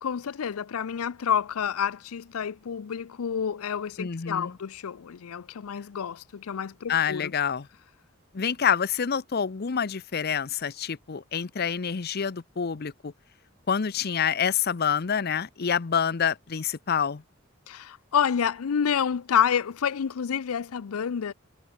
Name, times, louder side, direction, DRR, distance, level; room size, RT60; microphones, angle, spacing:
voice 1, 0.0-7.3 17.7-21.3, left 7 dB, 90° left, 0.5 m, -28 dB
voice 2, 4.0-4.6 6.9-7.7 8.3-13.1 13.7-17.2, left 7 dB, 50° left, 0.6 m, -27 dB
head